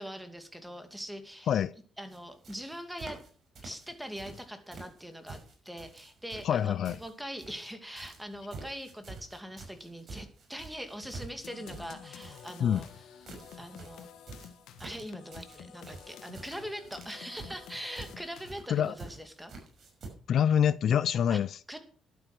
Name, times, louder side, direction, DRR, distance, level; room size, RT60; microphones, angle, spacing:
voice 1, 0.0-1.5 2.0-3.2 3.6-12.9 13.6-14.1 14.8-19.5 21.3-21.4 21.7-21.8, equal, 5° right, 2.5 m, -42 dB
sound 1, 2.1-2.2 2.4-3.3 3.5-4.4 4.7-7.7 8.0-20.1, right 3 dB, 55° right, 6.0 m, -48 dB
voice 2, 6.4-7.0 12.6-12.9 18.7-18.9 20.3-21.6, left 9 dB, 65° left, 0.5 m, -26 dB
sound 2, 11.4-18.8, left 8 dB, 85° left, 1.4 m, -50 dB
12.0 x 9.3 x 6.2 m
cardioid pair, 90°, 0 cm